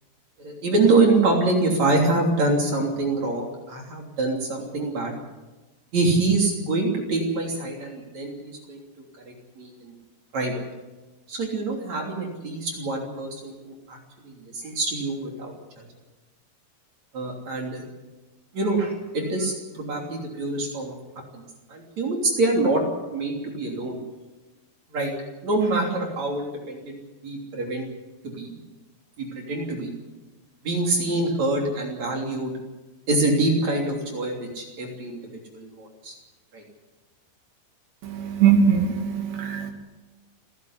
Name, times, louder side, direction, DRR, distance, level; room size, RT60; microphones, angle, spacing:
voice 1, 0.4-5.1 5.9-8.8 9.3-9.9 10.3-10.6 11.3-14.0 14.2-15.8 17.1-17.8 18.5-21.0 21.3-21.4 21.7-22.8 23.1-24.0 24.9-25.1 25.4-27.9 28.3-28.5 29.2-29.9 30.6-32.5 33.1-36.1 36.5-36.6, right 2 dB, 45° right, 1 dB, 4.1 m, -25 dB
voice 2, 38.0-39.7, right 7 dB, 65° right, 3 dB, 4.6 m, -21 dB
29.0 x 11.0 x 9.8 m, 1.1 s
omnidirectional pair, 5.0 m